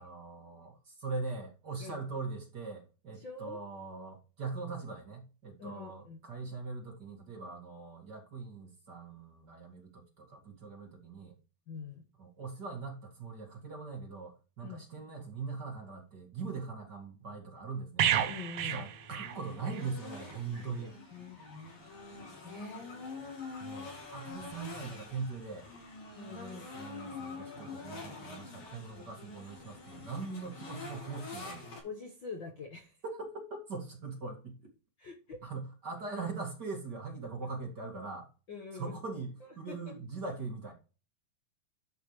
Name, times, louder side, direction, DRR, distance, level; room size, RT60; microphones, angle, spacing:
voice 1, 0.0-11.3 12.2-18.1 18.6-21.0 23.6-25.7 26.3-31.7 33.0-33.3 33.7-34.7 35.4-38.3 38.7-40.7, right 4 dB, 35° right, 1 dB, 2.4 m, -41 dB
voice 2, 3.1-3.6 5.6-6.2 11.7-12.0 14.6-14.8 18.3-18.8 20.5-21.4 22.4-22.9 26.1-26.9 31.8-33.0 35.0-35.5 37.4-37.5 38.5-39.0 39.4-39.8, left 5 dB, 50° left, 1 dB, 1.6 m, -45 dB
sound 1, 18.0-19.9 20.2-20.4, right 10 dB, 70° right, 1.5 m, -31 dB
sound 2, 18.6-31.8, left 3 dB, 85° left, 5.9 m, -46 dB
12.0 x 5.9 x 3.2 m, 0.33 s
omnidirectional pair, 3.4 m